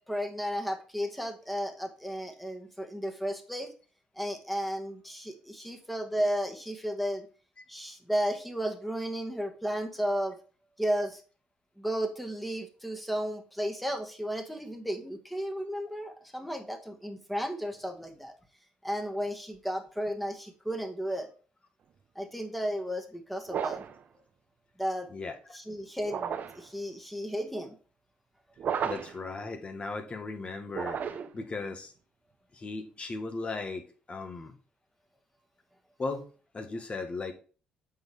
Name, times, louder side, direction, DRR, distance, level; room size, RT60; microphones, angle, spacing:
voice 1, 0.1-3.7 4.2-7.3 7.7-10.4 10.8-11.2 11.8-18.3 18.8-21.3 22.2-23.8 24.8-25.1 25.5-27.7, equal, ahead, 5 dB, 1.9 m, -33 dB
sound 1, 23.5-24.0 26.0-26.7 28.6-29.2 30.7-31.4, right 7 dB, 60° right, 0.9 m, -33 dB
voice 2, 28.8-31.0 31.3-31.9 32.5-34.5 36.0-36.3 36.5-37.3, left 3 dB, 35° left, 6 dB, 1.7 m, -37 dB
7.7 x 4.7 x 3.6 m, 0.37 s
supercardioid pair, 65°, 3 cm